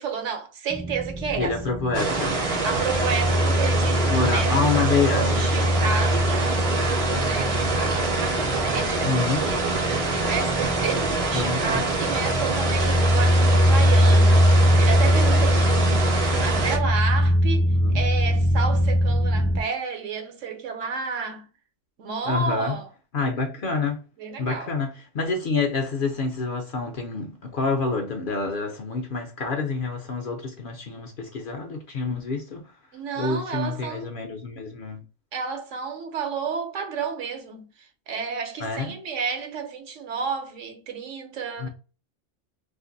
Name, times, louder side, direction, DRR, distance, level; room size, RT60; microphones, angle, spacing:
voice 1, 0.0-1.6 2.6-16.1 16.4-21.4 22.0-22.9 24.2-24.7 32.9-34.1 35.3-41.7, right 5 dB, 75° right, 1.1 m, -31 dB
sound 1, 0.7-19.6, equal, 15° left, 0.5 m, -22 dB
voice 2, 1.4-2.4 4.1-5.4 9.0-9.5 11.3-11.8 17.7-18.0 22.3-22.8 23.1-24.0 24.4-32.7 33.2-35.0 38.6-39.0 41.6-41.7, left 4 dB, 55° left, 0.6 m, -27 dB
sound 2, 1.9-16.8, right 3 dB, 40° right, 0.6 m, -26 dB
2.5 x 2.5 x 3.8 m
omnidirectional pair, 1.3 m